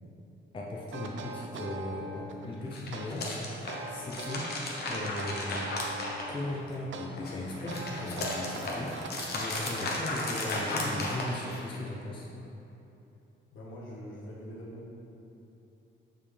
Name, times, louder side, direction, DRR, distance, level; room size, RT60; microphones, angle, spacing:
voice 1, 0.5-4.5 4.9-5.7 6.3-9.0 9.3-12.3, left 1 dB, 25° left, -2 dB, 0.5 m, -37 dB
sound 1, 0.9-2.5 2.9-4.6 4.9-6.5 6.9-11.5, right 3 dB, 65° right, 0.5 m, -42 dB
sound 2, 2.6-6.8 7.1-11.8, left 2 dB, 50° left, 0.9 m, -35 dB
voice 2, 13.5-14.9, equal, 70° left, -4 dB, 1.4 m, -43 dB
7.0 x 5.5 x 3.3 m, 2.9 s
wide cardioid pair, 170°, 21 cm